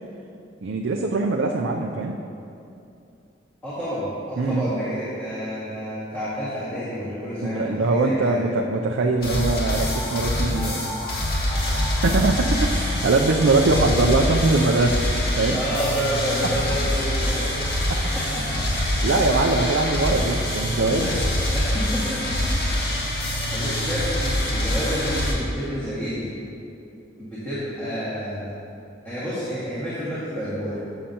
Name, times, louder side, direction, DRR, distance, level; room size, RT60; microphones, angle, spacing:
voice 1, 0.6-2.2 4.4-4.7 7.4-11.0 11.7-15.0 15.4-15.6 18.8-21.2, right 3 dB, 75° right, 1 dB, 0.5 m, -22 dB
voice 2, 3.6-8.4 15.0-15.2 15.5-17.5 18.0-18.7 20.0-20.2 20.8-22.2 23.1-26.3 27.2-28.5 29.0-30.8, equal, 10° left, -13 dB, 1.9 m, -30 dB
sound 1, 9.2-25.3, left 1 dB, 55° left, 1.7 m, -25 dB
12.5 x 6.6 x 2.9 m, 2.7 s
head